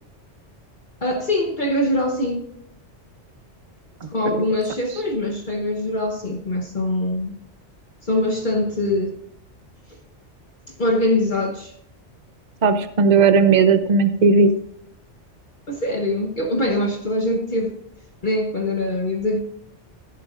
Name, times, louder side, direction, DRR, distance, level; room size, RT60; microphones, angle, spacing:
voice 1, 1.0-2.5 4.1-7.3 8.0-9.2 10.7-11.7 15.7-17.7 18.2-19.4, left 1 dB, 45° left, 1.1 m, -23 dB
voice 2, 12.6-14.5, right 4 dB, 40° right, 0.8 m, -16 dB
16.5 x 10.0 x 2.5 m
omnidirectional pair, 1.2 m